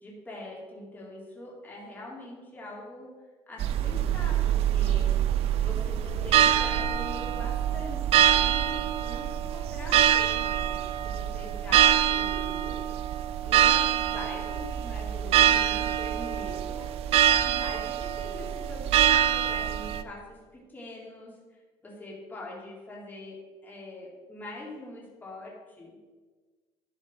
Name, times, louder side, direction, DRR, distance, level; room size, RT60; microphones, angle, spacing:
voice 1, 0.0-3.1 3.5-5.1 5.6-12.8 13.4-16.9 17.4-25.9, left 2 dB, 15° left, -4 dB, 2.3 m, -43 dB
sound 1, 3.6-20.0, right 11 dB, 60° right, 0.5 m, -25 dB
11.5 x 4.2 x 5.3 m, 1.4 s
cardioid pair, 135°, 12 cm